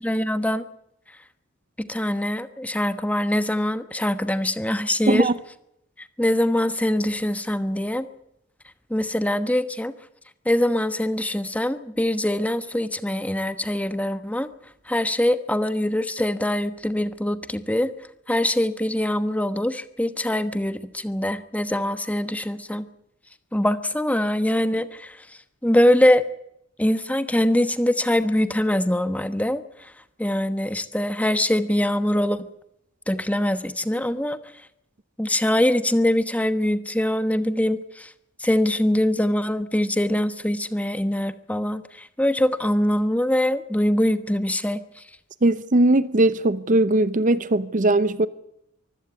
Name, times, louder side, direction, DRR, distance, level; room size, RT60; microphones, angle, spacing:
voice 1, 0.0-0.6 1.8-5.3 6.2-8.1 8.9-9.9 10.5-14.5 14.9-17.9 18.3-22.8 23.5-25.2 25.6-26.2 26.8-29.6 30.2-32.5 33.1-34.4 35.2-38.1 38.4-44.8, left 1 dB, 5° left, 1.1 m, -23 dB
voice 2, 45.4-48.3, right 2 dB, 40° right, 0.8 m, -19 dB
24.5 x 16.0 x 8.4 m
head